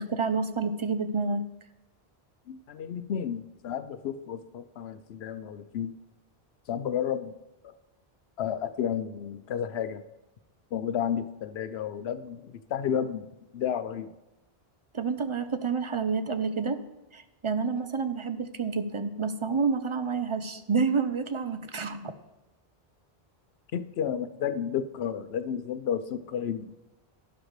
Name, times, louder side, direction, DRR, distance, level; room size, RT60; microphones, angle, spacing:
voice 1, 0.0-1.4 14.9-16.8 17.1-22.1, right 5 dB, 40° right, 10 dB, 0.5 m, -29 dB
voice 2, 2.5-5.9 6.7-7.3 8.4-10.0 10.7-13.3 13.5-14.1 23.7-26.7, left 8 dB, 80° left, 11 dB, 0.9 m, -32 dB
11.5 x 10.0 x 3.2 m, 1.0 s
omnidirectional pair, 1.1 m